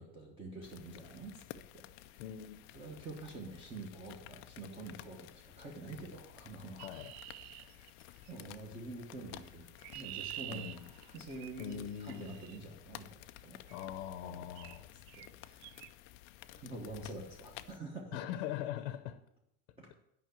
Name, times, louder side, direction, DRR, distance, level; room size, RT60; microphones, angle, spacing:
voice 1, 0.0-1.4 1.7-2.2 2.7-6.8 7.6-7.9 8.3-9.7 9.9-13.7 14.2-14.5 15.1-15.6 16.5-18.2 19.8-19.9, right 2 dB, 15° right, 1.1 m, -47 dB
sound 1, 0.6-17.8, left 14 dB, 40° left, 0.4 m, -54 dB
voice 2, 2.2-2.7 6.8-7.1 10.5-10.9 11.6-12.4 13.7-14.9 18.1-19.2, left 11 dB, 70° left, 0.8 m, -41 dB
Chirp tweet, 6.8-8.4 9.4-12.6 13.7-14.0 14.5-14.8 15.1-15.3 15.6-15.9, right 16 dB, 70° right, 0.5 m, -48 dB
9.3 x 5.7 x 7.9 m
cardioid pair, 175°, 32 cm